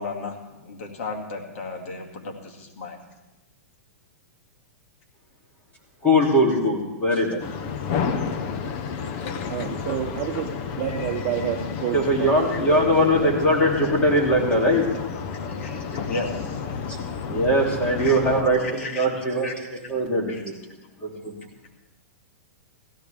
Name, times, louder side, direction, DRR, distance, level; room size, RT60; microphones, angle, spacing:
voice 1, 0.0-3.0 12.5-12.6 15.6-16.6 18.0-18.2 18.6-19.1 19.4-19.5 20.3-20.4, left 3 dB, 65° left, 2 dB, 2.2 m, -34 dB
voice 2, 6.0-7.4 11.9-14.9 16.9-17.0 17.2-19.5 19.9-20.5 21.0-21.3, equal, 15° left, -1 dB, 2.7 m, -21 dB
sound 1, 7.4-18.4, left 6 dB, 45° left, 1.0 m, -31 dB
voice 3, 9.5-14.0, right 10 dB, 40° right, 1 dB, 1.0 m, -30 dB
16.0 x 14.0 x 3.4 m, 1.0 s
hypercardioid pair, 145°, 8 cm